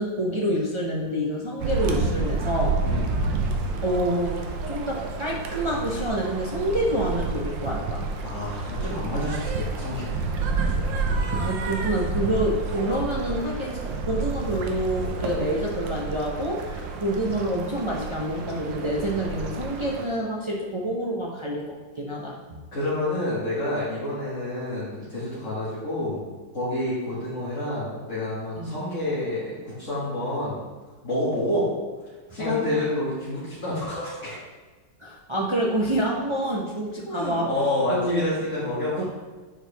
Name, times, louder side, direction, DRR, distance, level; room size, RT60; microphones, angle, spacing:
voice 1, 0.0-2.8 3.8-8.0 11.3-22.4 28.6-28.7 32.3-32.6 35.0-37.5 37.9-38.3 39.0-39.1, right 1 dB, 50° right, -3 dB, 0.3 m, -27 dB
sound 1, 1.6-20.1, right 3 dB, 80° right, 1.5 m, -29 dB
voice 2, 2.8-3.2 8.2-10.2 22.7-26.2 26.5-30.6 31.0-31.7 32.3-34.4 37.0-39.0, left 1 dB, 40° left, -10 dB, 2.2 m, -28 dB
9.9 x 4.6 x 3.4 m, 1.3 s
omnidirectional pair, 2.0 m